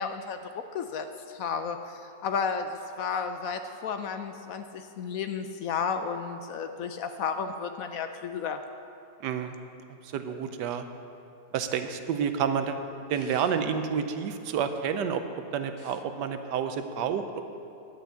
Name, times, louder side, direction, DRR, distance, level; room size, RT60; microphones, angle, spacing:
voice 1, 0.0-8.6, left 6 dB, 70° left, 8 dB, 0.9 m, -33 dB
voice 2, 9.2-9.6 10.0-10.9 11.5-12.8 13.1-15.2 15.5-17.4, right 7 dB, 85° right, 8 dB, 1.3 m, -29 dB
11.0 x 6.2 x 8.0 m, 2.8 s
omnidirectional pair, 1.8 m